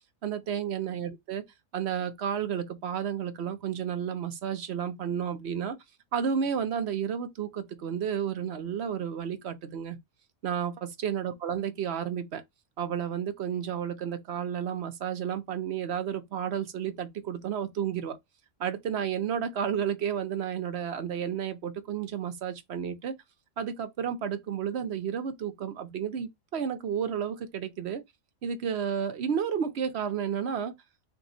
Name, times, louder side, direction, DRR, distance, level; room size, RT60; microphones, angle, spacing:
voice 1, 0.2-1.4 1.7-5.8 6.1-10.0 10.4-12.4 12.8-18.2 18.6-23.1 23.6-28.0 28.4-30.7, right 8 dB, 60° right, 1.0 m, -32 dB
3.5 x 3.0 x 3.8 m
omnidirectional pair, 1.4 m